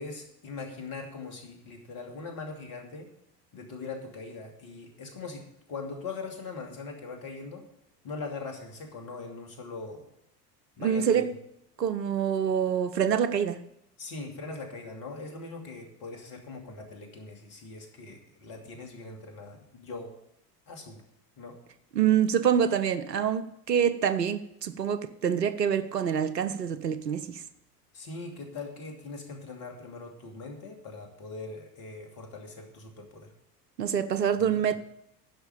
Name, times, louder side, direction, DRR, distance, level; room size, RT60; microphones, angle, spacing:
voice 1, 0.0-3.1 3.5-5.4 5.7-7.7 8.0-10.1 10.8-11.3 14.0-20.1 20.7-21.0 21.4-21.6 27.9-33.3 34.4-34.8, left 3 dB, 45° left, 2.7 m, -41 dB
voice 2, 10.8-11.3 11.8-13.6 21.9-27.4 33.8-34.8, right 8 dB, 80° right, 0.8 m, -26 dB
10.5 x 6.2 x 8.5 m
figure-of-eight pair, 70°, 48 cm